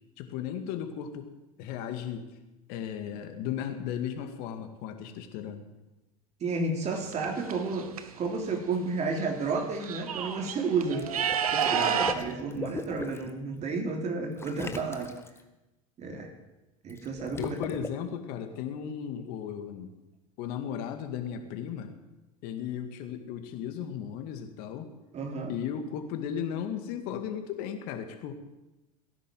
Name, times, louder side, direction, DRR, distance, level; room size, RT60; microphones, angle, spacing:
voice 1, 0.2-1.3 1.6-2.3 2.7-5.6 11.7-12.1 17.4-19.9 20.4-21.9 22.4-24.9 25.5-28.3, left 8 dB, 55° left, 6 dB, 2.1 m, -35 dB
voice 2, 6.4-11.1 11.5-15.2 16.0-16.3 16.8-17.6 25.1-25.5, right 4 dB, 40° right, 3 dB, 3.3 m, -31 dB
sound 1, 6.9-8.0 9.2-9.3 9.6-12.1, right 8 dB, 80° right, 1.3 m, -30 dB
Water / Liquid, 10.8-13.3 14.4-15.4 16.9-17.9, left 3 dB, 15° left, 1.7 m, -39 dB
17.5 x 11.0 x 7.7 m, 1.0 s
hypercardioid pair, 85°, 18 cm